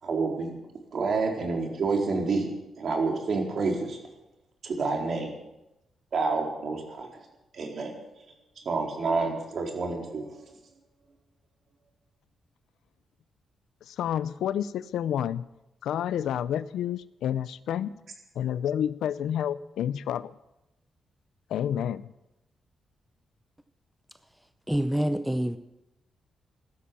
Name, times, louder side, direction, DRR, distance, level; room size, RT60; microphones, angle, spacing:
voice 1, 0.0-0.5 0.9-2.5 2.8-4.0 4.6-5.3 6.1-7.2 7.5-7.9 8.6-10.4, right 4 dB, 55° right, 2 dB, 4.1 m, -28 dB
voice 2, 13.8-15.4 15.8-17.9 18.4-20.3 21.5-22.1, left 10 dB, 90° left, 17 dB, 0.6 m, -29 dB
voice 3, 24.7-25.6, equal, 5° right, 11 dB, 0.7 m, -26 dB
16.0 x 13.0 x 7.0 m, 0.93 s
cardioid pair, 100°, 0 cm